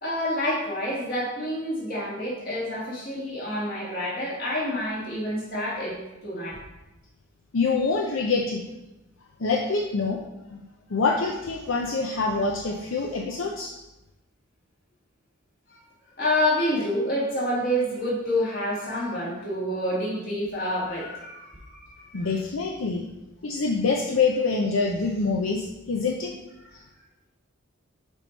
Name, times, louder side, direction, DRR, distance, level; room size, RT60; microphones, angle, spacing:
voice 1, 0.0-6.0 6.2-6.6 15.7-15.8 16.2-22.3 26.6-26.7, left 1 dB, 45° left, -5 dB, 2.3 m, -28 dB
voice 2, 7.5-8.6 9.4-10.2 10.5-10.6 10.9-13.7 22.1-23.0 23.4-26.3, left 4 dB, 70° left, 1 dB, 0.6 m, -25 dB
7.0 x 4.6 x 4.1 m, 0.97 s
head